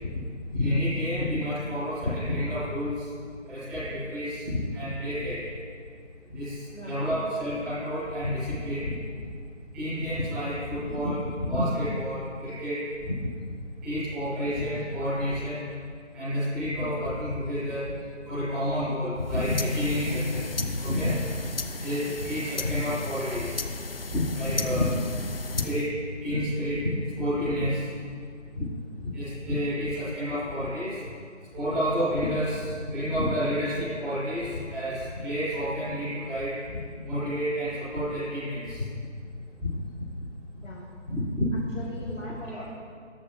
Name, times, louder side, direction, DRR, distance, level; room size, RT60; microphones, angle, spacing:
voice 1, 0.5-3.0 3.4-5.4 6.3-8.9 9.7-13.1 13.8-15.6 16.1-17.9 18.2-21.1 21.8-23.6 24.1-24.9 25.5-25.9 26.2-27.8 28.5-28.6 29.0-31.0 31.5-38.8 39.6-39.7 41.0-41.4 42.5-42.6, left 1 dB, ahead, -17 dB, 1.4 m, -29 dB
voice 2, 6.7-7.1 22.0-22.2 40.6-40.9 41.5-42.6, left 1 dB, 90° left, -5 dB, 2.2 m, -40 dB
sound 1, 19.2-25.9, left 3 dB, 50° left, 0.6 m, -37 dB
14.0 x 11.5 x 2.7 m, 2.2 s
figure-of-eight pair, 160°, 37 cm